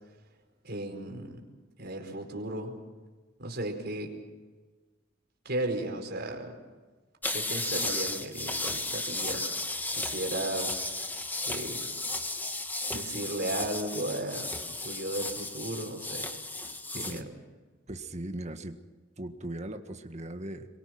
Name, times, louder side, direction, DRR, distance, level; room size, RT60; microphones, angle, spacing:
voice 1, 0.6-1.4 1.8-2.7 3.4-4.1 5.4-6.6 7.3-9.4 9.9-10.9 11.4-11.9 12.9-16.3 16.9-17.2, right 1 dB, 55° right, 2 dB, 4.7 m, -35 dB
sound 1, 7.2-17.2, left 2 dB, 10° left, 1.4 m, -34 dB
voice 2, 16.9-17.3 17.9-18.8 19.2-20.7, right 1 dB, 35° right, 6 dB, 1.7 m, -38 dB
26.5 x 23.0 x 6.1 m, 1.3 s
head